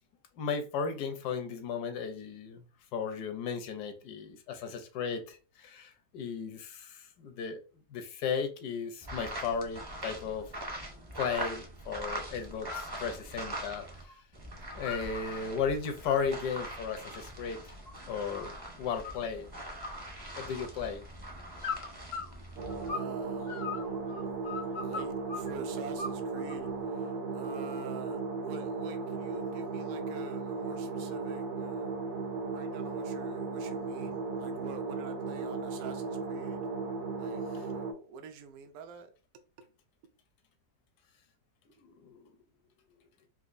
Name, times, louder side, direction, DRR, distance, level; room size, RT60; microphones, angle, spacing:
voice 1, 0.4-2.6 2.9-7.6 7.9-10.5 11.2-13.9 14.7-17.6 18.1-19.5 20.4-21.0 41.8-42.3, left 6 dB, 80° left, 1.2 m, -35 dB
sound 1, 9.0-14.0 14.3-22.9, right 1 dB, 25° right, 0.5 m, -42 dB
sound 2, 12.5-12.9 13.3-14.2 14.5-15.4 15.8-18.6 19.0-19.5 19.8-20.8 21.6-23.1 23.4-25.5 26.0-26.7, left 5 dB, 60° left, 0.6 m, -40 dB
sound 3, 22.6-37.9, right 4 dB, 90° right, 0.4 m, -36 dB
voice 2, 22.9-23.7 24.8-31.9 32.5-36.7 37.2-39.1, right 5 dB, 75° right, 1.0 m, -47 dB
4.1 x 2.5 x 2.5 m
omnidirectional pair, 1.7 m